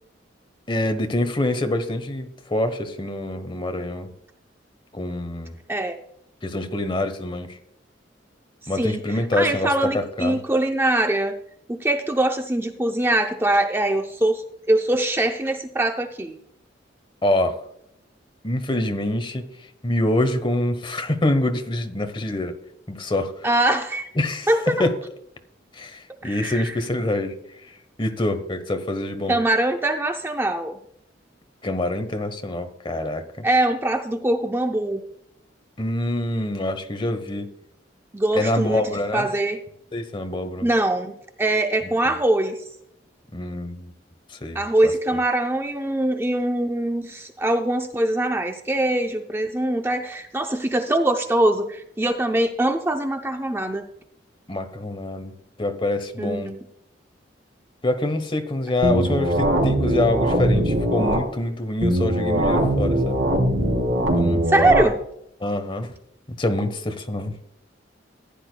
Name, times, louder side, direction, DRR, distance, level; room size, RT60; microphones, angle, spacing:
voice 1, 0.7-4.1 4.9-5.6 6.4-7.6 8.7-10.4 17.2-17.6 18.4-19.5 19.8-22.5 22.9-23.5 24.2-24.5 24.8-24.9 25.7-27.4 28.0-29.4 31.6-33.5 35.8-37.5 38.3-39.3 39.9-40.7 43.3-43.9 44.3-44.6 54.5-55.3 55.6-56.5 57.8-63.2 64.1-64.4 65.4-65.9 66.4-67.3, left 1 dB, 25° left, 8 dB, 1.0 m, -25 dB
voice 2, 5.7-6.0 8.7-9.0 9.4-11.3 11.7-16.4 23.4-24.1 24.5-24.9 26.2-26.8 29.3-30.8 33.4-35.0 38.1-38.8 39.1-39.6 40.6-42.6 44.5-53.9 56.2-56.6 64.5-65.0, right 1 dB, 15° right, 5 dB, 0.5 m, -22 dB
sound 1, 58.8-61.2 61.8-64.8, right 1 dB, 85° right, 3.1 m, -21 dB
15.0 x 9.9 x 2.2 m, 0.76 s
head